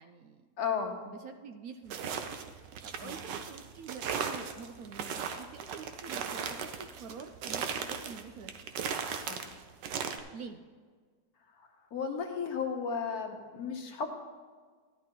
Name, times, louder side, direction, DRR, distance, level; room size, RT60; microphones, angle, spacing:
voice 1, 0.0-0.5 1.1-2.2 2.8-8.7 10.3-10.6, right 5 dB, 70° right, 6 dB, 0.9 m, -47 dB
voice 2, 0.6-1.0 3.0-3.1 9.2-9.5 11.6-14.1, left 6 dB, 65° left, 3 dB, 1.5 m, -35 dB
sound 1, 1.9-10.2, right 7 dB, 90° right, 1.4 m, -37 dB
13.5 x 11.0 x 3.0 m, 1.5 s
omnidirectional pair, 1.8 m